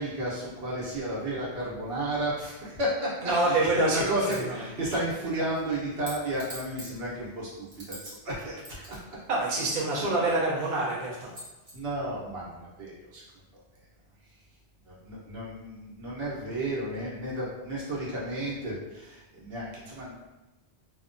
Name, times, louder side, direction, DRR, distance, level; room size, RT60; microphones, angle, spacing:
voice 1, 0.0-9.0 9.9-10.6 11.7-13.2 14.9-20.2, right 1 dB, 65° right, -6 dB, 1.0 m, -33 dB
voice 2, 3.2-4.4 9.3-11.3, right 2 dB, 50° right, -4 dB, 0.6 m, -26 dB
sound 1, 4.3-4.5 4.9-8.1 8.4-10.4 10.9-11.0 11.3-11.7, equal, 35° right, 1.0 m, -46 dB
2.8 x 2.1 x 2.5 m, 1.0 s
omnidirectional pair, 1.1 m